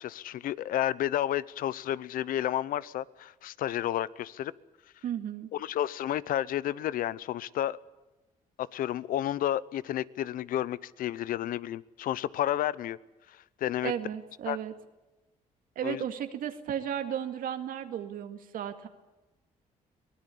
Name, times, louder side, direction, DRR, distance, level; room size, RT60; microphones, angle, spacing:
voice 1, 0.0-4.5 5.5-7.8 8.6-13.0 13.3-13.9 14.5-14.6 15.8-16.0, left 12 dB, 75° left, 20 dB, 0.7 m, -31 dB
voice 2, 5.0-5.5 13.8-14.7 15.8-18.9, right 9 dB, 75° right, 7 dB, 2.0 m, -34 dB
23.5 x 18.5 x 8.5 m, 1.1 s
cardioid pair, 85°, 15 cm